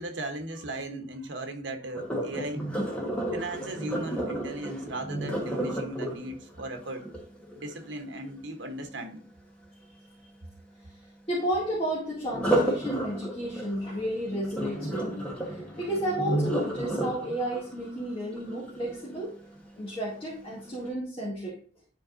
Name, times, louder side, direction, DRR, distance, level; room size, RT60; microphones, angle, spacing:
voice 1, 0.0-2.7 3.3-7.1 7.6-9.2, right 1 dB, 90° right, 1.0 m, -37 dB
Sink (filling or washing), 1.9-7.9 12.3-19.3 19.8-20.2 20.6-20.7, right 1 dB, 5° left, 1.3 m, -32 dB
voice 2, 11.3-19.4 19.8-21.6, right 1 dB, 30° left, 2.2 m, -32 dB
10.5 x 4.6 x 2.6 m
head